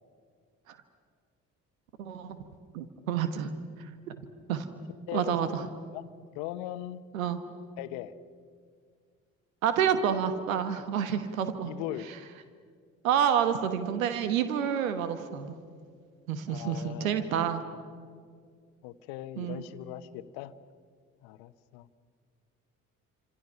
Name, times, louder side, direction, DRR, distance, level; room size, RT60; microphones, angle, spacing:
voice 1, 2.0-2.4 2.7-3.5 4.1-4.2 4.5-4.7 5.1-5.6 7.1-7.4 9.6-11.7 13.0-15.6 16.3-17.6 19.4-19.6, right 8 dB, 80° right, 10 dB, 1.4 m, -28 dB
voice 2, 5.1-5.6 5.9-6.0 6.3-7.0 7.8-8.1 11.6-12.1 16.5-17.4 18.8-20.5 21.2-21.9, left 13 dB, 70° left, 13 dB, 1.2 m, -39 dB
28.0 x 26.5 x 5.8 m, 2.1 s
hypercardioid pair, 50°, 40 cm